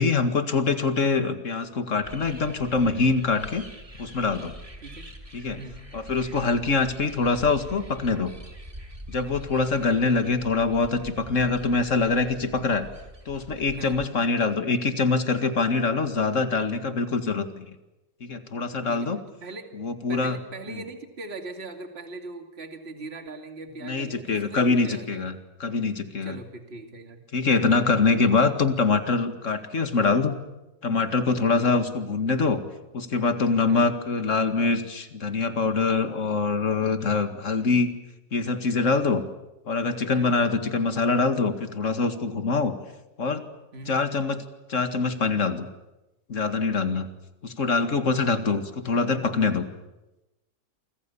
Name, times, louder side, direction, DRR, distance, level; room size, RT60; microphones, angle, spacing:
voice 1, 0.0-3.6 4.0-4.5 5.3-5.6 5.9-8.3 9.1-12.9 13.3-17.7 18.2-19.2 19.8-20.4 20.7-20.8 23.8-25.3 25.6-26.3 27.3-30.4 30.8-32.6 32.9-37.9 38.3-39.2 39.7-42.8 43.2-43.4 43.9-44.4 44.7-45.7 46.3-47.1 47.4-49.7, left 4 dB, 45° left, 8 dB, 2.2 m, -24 dB
sound 1, 2.0-14.1, right 1 dB, 20° right, 2.9 m, -44 dB
voice 2, 18.9-19.7 20.1-25.2 26.2-27.2 33.7-33.9 40.1-40.3 43.7-44.0, right 3 dB, 35° right, 5 dB, 2.6 m, -40 dB
28.0 x 25.0 x 7.1 m, 0.99 s
omnidirectional pair, 1.9 m